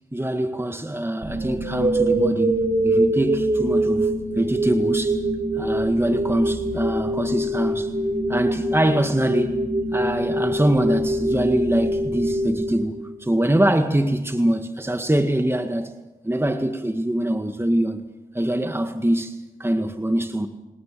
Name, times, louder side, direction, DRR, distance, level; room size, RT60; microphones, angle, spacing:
voice 1, 0.1-5.2 5.6-7.9 8.3-9.7 9.9-15.9 16.2-18.0 18.3-20.5, right 1 dB, 15° right, 1.8 m, -23 dB
sound 1, 1.2-13.3, right 1 dB, 50° right, 6.3 m, -24 dB
30.0 x 18.5 x 6.9 m
cardioid pair, 45°, 15 cm